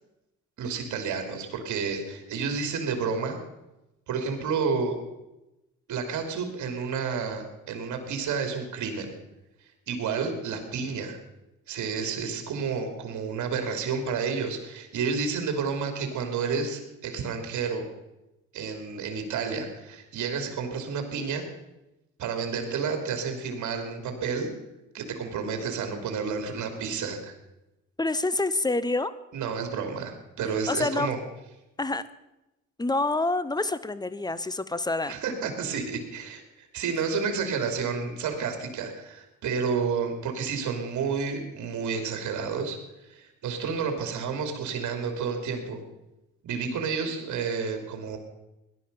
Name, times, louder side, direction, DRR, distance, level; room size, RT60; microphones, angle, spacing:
voice 1, 0.6-3.4 4.1-5.0 5.9-9.1 9.9-11.2 11.7-17.9 18.5-21.4 22.2-24.5 24.9-27.3 29.3-31.2 35.0-42.8 43.1-45.8 46.4-48.2, right 5 dB, 75° right, 6 dB, 3.1 m, -30 dB
voice 2, 28.0-29.1 30.7-31.1 31.8-32.1 32.8-35.2, left 2 dB, 15° left, 16 dB, 1.0 m, -27 dB
17.5 x 11.5 x 6.9 m, 0.95 s
cardioid pair, 90°, 30 cm